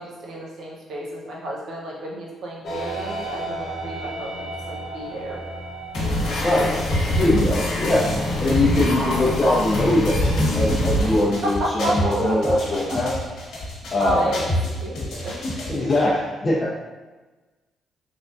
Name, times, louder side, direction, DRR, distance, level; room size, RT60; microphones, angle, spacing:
voice 1, 0.0-5.4 6.6-6.8 11.4-12.6 14.0-14.5 14.8-15.4, right 1 dB, 70° right, -3 dB, 0.9 m, -30 dB
sound 1, 2.6-16.3, right 2 dB, 50° left, 1.0 m, -37 dB
sound 2, 5.9-16.0, left 1 dB, 75° left, 1.2 m, -24 dB
voice 2, 6.4-8.1 8.4-13.2 13.9-14.3 15.7-16.7, left 1 dB, 30° left, -5 dB, 0.6 m, -22 dB
3.5 x 3.4 x 2.6 m, 1.2 s
cardioid pair, 90°, 0 cm